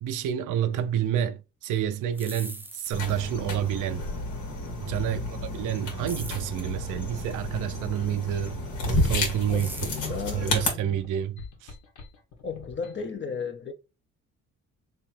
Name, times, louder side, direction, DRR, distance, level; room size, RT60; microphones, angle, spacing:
voice 1, 0.0-4.0 4.8-9.9 10.3-11.7, right 10 dB, 85° right, 0.6 m, -29 dB
sound 1, 2.0-3.3 6.1-6.6 9.5-10.2, right 2 dB, 5° right, 0.5 m, -42 dB
sound 2, 2.9-10.7, left 2 dB, 85° left, 1.7 m, -31 dB
voice 2, 5.0-5.6 9.5-11.0 12.4-13.7, left 5 dB, 40° left, 0.7 m, -35 dB
sound 3, 7.9-13.1, left 4 dB, 70° left, 1.4 m, -48 dB
3.2 x 3.1 x 4.3 m
cardioid pair, 90°, 30 cm